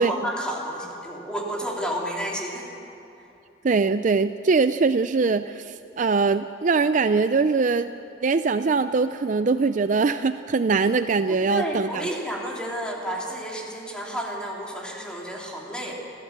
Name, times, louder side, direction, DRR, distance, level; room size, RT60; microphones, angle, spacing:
voice 1, 0.0-2.7 11.3-15.9, equal, 5° left, -2 dB, 3.2 m, -31 dB
voice 2, 3.6-7.9 8.2-12.0, right 4 dB, 40° right, 11 dB, 0.4 m, -22 dB
26.0 x 15.0 x 8.0 m, 2.8 s
head